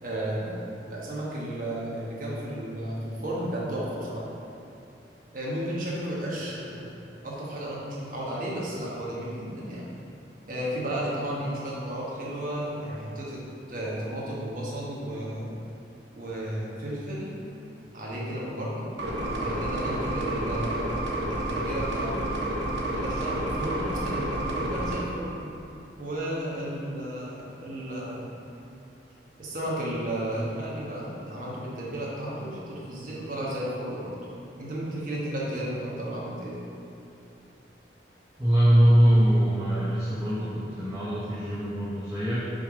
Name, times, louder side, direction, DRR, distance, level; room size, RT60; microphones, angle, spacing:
voice 1, 0.0-4.3 5.3-6.9 7.2-9.8 10.5-13.4 13.7-15.6 16.1-17.3 17.9-18.9 19.1-20.9 21.3-22.3 22.9-25.3 26.0-28.3 29.4-34.1 34.6-36.5, right 1 dB, 50° right, -6 dB, 1.3 m, -33 dB
sound 1, 19.0-25.0, right 1 dB, 85° right, 0.9 m, -30 dB
voice 2, 38.4-42.5, equal, 15° right, -9 dB, 0.8 m, -22 dB
6.0 x 3.5 x 4.9 m, 2.8 s
head